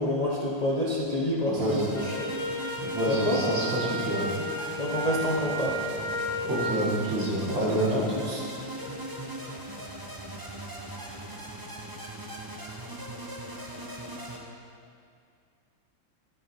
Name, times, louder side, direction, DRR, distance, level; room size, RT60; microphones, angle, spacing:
voice 1, 0.0-2.3 3.1-3.4 4.8-5.9 7.9-8.4, left 1 dB, 60° left, -3 dB, 0.4 m, -28 dB
voice 2, 1.5-1.9 2.8-4.3 6.4-8.0, right 1 dB, 75° right, -5 dB, 2.7 m, -28 dB
sound 1, 1.6-14.4, right 1 dB, 30° right, 0.4 m, -39 dB
Wind instrument woodwind instrument, 1.9-6.8, equal, 40° left, 2.6 m, -33 dB
10.0 x 7.5 x 4.7 m, 2.3 s
omnidirectional pair, 2.1 m